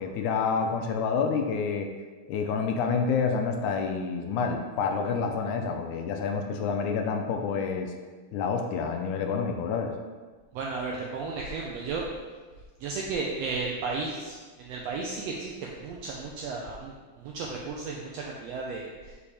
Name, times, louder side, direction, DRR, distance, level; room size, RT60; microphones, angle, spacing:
voice 1, 0.0-1.9 2.3-7.9 8.3-10.0, left 5 dB, 80° left, 4 dB, 2.0 m, -28 dB
voice 2, 10.5-12.0 12.8-19.1, right 4 dB, 80° right, -1 dB, 1.5 m, -34 dB
6.9 x 5.0 x 3.4 m, 1.4 s
omnidirectional pair, 3.5 m